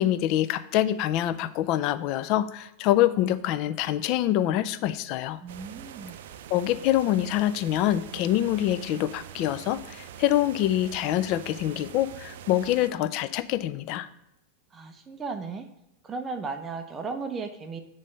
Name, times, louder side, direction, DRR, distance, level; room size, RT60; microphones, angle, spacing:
voice 1, 0.0-5.4 6.5-14.1, left 13 dB, 50° left, 13 dB, 0.4 m, -25 dB
voice 2, 5.4-6.1 14.7-15.7 16.0-17.8, right 4 dB, 20° right, 8 dB, 0.6 m, -35 dB
sound 1, 5.5-12.9, right 9 dB, 75° right, 0.4 m, -44 dB
9.0 x 3.2 x 5.4 m, 0.86 s
supercardioid pair, 125°, 0 cm